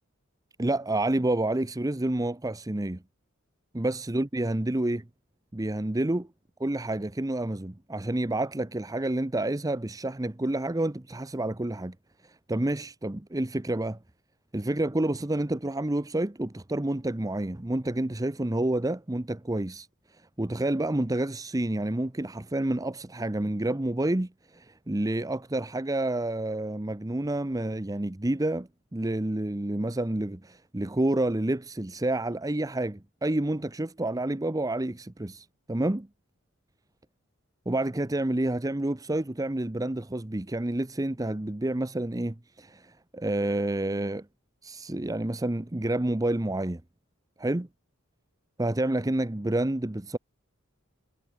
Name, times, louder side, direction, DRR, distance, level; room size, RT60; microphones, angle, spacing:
voice 1, 0.6-3.0 3.7-5.0 5.5-6.3 6.6-11.9 12.2-14.0 14.5-19.9 20.4-36.1 37.7-44.3 44.6-46.8 47.4-47.7 48.6-50.2, right 1 dB, 15° right, 0.7 m, -29 dB
head